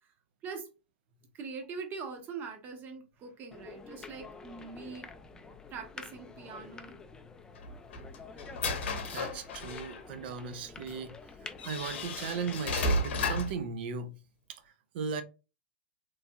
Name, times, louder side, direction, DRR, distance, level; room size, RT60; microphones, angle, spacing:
voice 1, 1.3-5.1 5.7-7.0, right 5 dB, 30° right, 0.8 m, -42 dB
sound 1, 3.5-12.8, left 4 dB, 10° left, 0.3 m, -49 dB
sound 2, 7.6-10.0 10.9-11.0 11.6-13.6, left 2 dB, 70° left, 0.7 m, -33 dB
voice 2, 9.1-14.2 14.5-15.2, right 5 dB, 60° right, 0.5 m, -37 dB
3.1 x 2.6 x 2.2 m
hypercardioid pair, 130°, 6 cm